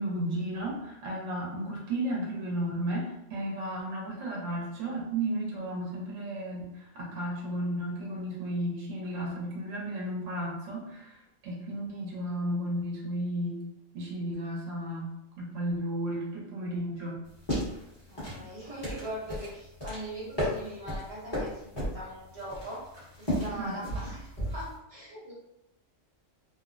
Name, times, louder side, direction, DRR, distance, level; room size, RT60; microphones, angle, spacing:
voice 1, 0.0-6.6 6.9-11.2 11.4-13.6 13.9-17.2 23.6-23.7, right 1 dB, 80° right, -3 dB, 1.1 m, -33 dB
sound 1, 17.2-24.8, equal, 20° left, 1.0 m, -35 dB
voice 2, 18.1-22.9 23.2-25.3, right 1 dB, 35° right, -6 dB, 0.8 m, -41 dB
2.8 x 2.0 x 2.4 m, 0.84 s
omnidirectional pair, 1.3 m